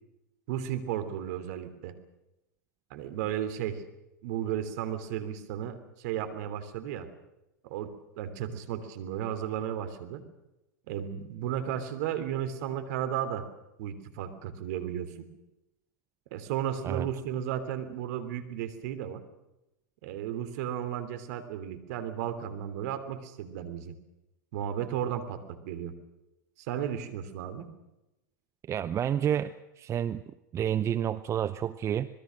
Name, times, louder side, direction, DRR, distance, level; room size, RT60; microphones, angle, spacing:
voice 1, 0.5-2.0 2.9-3.8 4.2-7.1 7.6-10.2 10.9-13.5 13.8-15.3 16.3-19.2 20.0-23.9 24.5-25.9 26.6-27.7, right 10 dB, 60° right, 10 dB, 3.1 m, -34 dB
voice 2, 28.7-30.2 30.5-32.1, right 10 dB, 30° right, 14 dB, 0.8 m, -29 dB
26.0 x 20.5 x 6.5 m, 0.94 s
hypercardioid pair, 100°, 10 cm